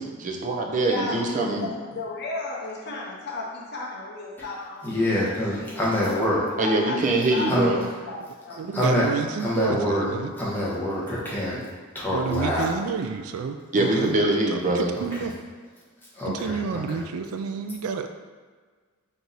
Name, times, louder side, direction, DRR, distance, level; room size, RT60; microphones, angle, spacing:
voice 1, 0.0-1.7 6.6-7.8 13.7-14.9, right 2 dB, 35° right, 1 dB, 0.6 m, -23 dB
voice 2, 0.9-4.9 5.2-5.3 5.6-6.3 6.6-8.8, left 3 dB, 50° left, -2 dB, 0.6 m, -34 dB
voice 3, 4.8-6.5 7.5-7.7 8.7-9.1 9.4-10.1 10.4-11.6 11.9-12.8 13.9-14.0 14.9-15.3 16.1-17.0, left 1 dB, 10° left, -8 dB, 1.1 m, -26 dB
voice 4, 8.6-10.3 12.1-14.3 14.8-15.3 16.3-18.1, right 5 dB, 85° right, 7 dB, 0.3 m, -30 dB
4.6 x 2.7 x 3.9 m, 1.5 s
head